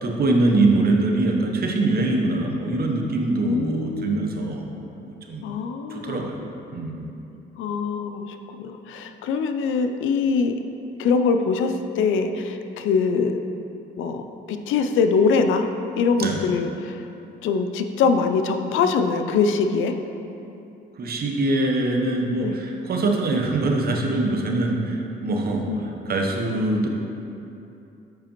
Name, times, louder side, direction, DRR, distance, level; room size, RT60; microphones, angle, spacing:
voice 1, 0.0-4.6 5.0-5.5 5.9-6.4 6.7-7.0 16.2-16.4 21.0-26.9, right 2 dB, 50° right, 1 dB, 0.8 m, -23 dB
voice 2, 3.4-4.3 5.4-6.2 7.6-10.5 11.0-13.3 14.0-14.2 14.5-15.7 16.0-17.0 17.4-19.9 22.4-22.5 25.7-25.8, left 5 dB, 80° left, 7 dB, 0.4 m, -23 dB
7.5 x 5.0 x 3.0 m, 2.8 s
cardioid pair, 90°, 20 cm